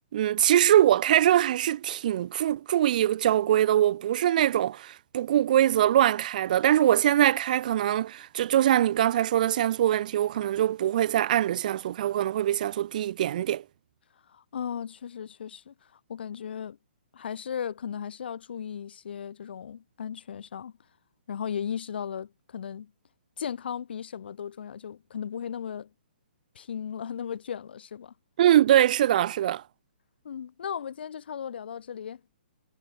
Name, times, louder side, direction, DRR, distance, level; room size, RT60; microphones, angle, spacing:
voice 1, 0.1-13.6 28.4-29.6, right 12 dB, 45° right, 1.8 m, -23 dB
voice 2, 14.3-16.8 17.1-20.7 21.3-22.9 23.4-25.9 26.6-28.1 30.2-32.2, left 8 dB, 60° left, 3.7 m, -36 dB
hypercardioid pair, 160°, 6 cm